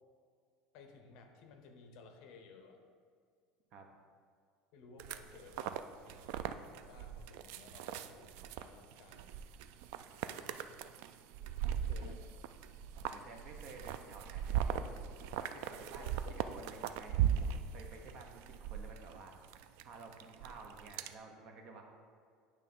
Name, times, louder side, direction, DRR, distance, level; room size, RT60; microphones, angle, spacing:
voice 1, 0.7-2.8 4.7-6.5 6.8-9.3 11.9-12.3 16.0-16.5, left 4 dB, 55° left, 5 dB, 0.8 m, -57 dB
sound 1, 5.0-21.1, right 9 dB, 65° right, 0.3 m, -39 dB
voice 2, 11.8-12.1 13.1-15.0 15.4-19.3 19.8-21.8, right 3 dB, 40° right, 3 dB, 0.8 m, -53 dB
9.6 x 3.2 x 5.4 m, 2.1 s
cardioid pair, 175°, 0 cm